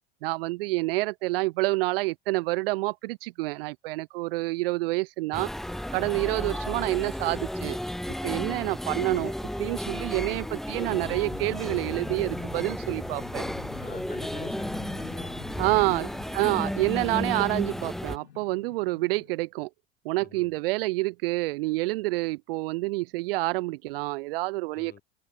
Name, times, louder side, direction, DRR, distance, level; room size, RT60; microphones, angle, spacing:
voice 1, 0.2-5.5 5.9-7.8 8.2-13.5 15.6-16.1 16.3-19.7 20.0-25.0, right 22 dB, 60° right, 0.6 m, -28 dB
sound 1, 5.3-18.2, left 1 dB, ahead, 0.4 m, -33 dB
voice 2, 10.3-10.6 13.8-16.0 20.2-20.5 24.7-25.0, left 8 dB, 30° left, 3.7 m, -49 dB
sound 2, 10.9-19.4, left 11 dB, 85° left, 0.9 m, -47 dB
hypercardioid pair, 85°, 32 cm